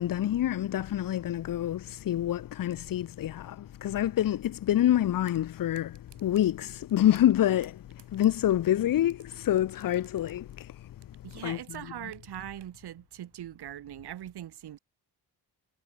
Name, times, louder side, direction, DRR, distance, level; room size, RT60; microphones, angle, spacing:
voice 1, 0.0-7.8 8.1-10.8 11.3-12.1, left 12 dB, 55° left, 0.7 m, -27 dB
sound 1, 5.2-5.4 5.7-6.5 6.9-7.4 7.6-9.2 9.6-11.2 11.5-12.7, right 11 dB, 90° right, 4.1 m, -58 dB
voice 2, 11.2-14.8, right 12 dB, 70° right, 1.5 m, -41 dB
wide cardioid pair, 175°, 40 cm